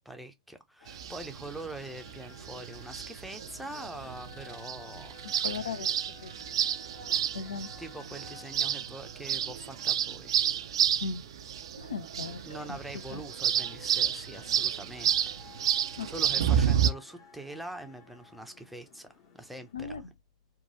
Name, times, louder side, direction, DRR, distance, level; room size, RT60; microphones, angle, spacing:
voice 1, 0.0-5.2 7.0-7.3 7.8-10.4 12.4-15.3 16.1-19.9, right 2 dB, ahead, 0.5 m, -43 dB
sound 1, 0.8-19.7, left 5 dB, 50° left, 1.2 m, -55 dB
sound 2, 0.9-16.9, right 9 dB, 65° right, 0.3 m, -30 dB
voice 2, 5.2-6.3 7.3-7.7 11.0-11.2 11.8-12.4 12.7-12.8 13.1-13.2 16.0-16.1 16.4-16.5 19.7-20.0, left 5 dB, 80° left, 0.4 m, -37 dB
3.0 x 2.2 x 2.6 m
figure-of-eight pair, 95°, 3 cm